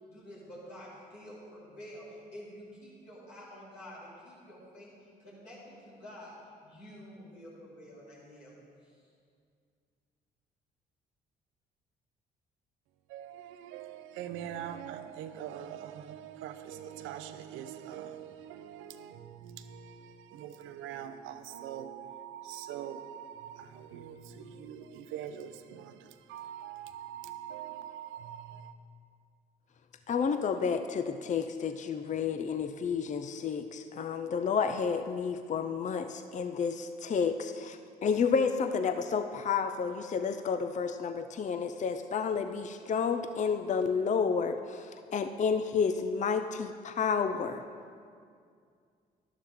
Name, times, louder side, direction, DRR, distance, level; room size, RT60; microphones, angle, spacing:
voice 1, 0.1-6.3 6.6-9.0, equal, 90° left, -8 dB, 3.1 m, -49 dB
voice 2, 13.1-28.7, right 10 dB, 70° right, 10 dB, 0.7 m, -43 dB
voice 3, 30.1-47.6, left 6 dB, 35° left, 9 dB, 0.6 m, -30 dB
11.5 x 11.0 x 3.7 m, 2.2 s
hypercardioid pair, 50°, 21 cm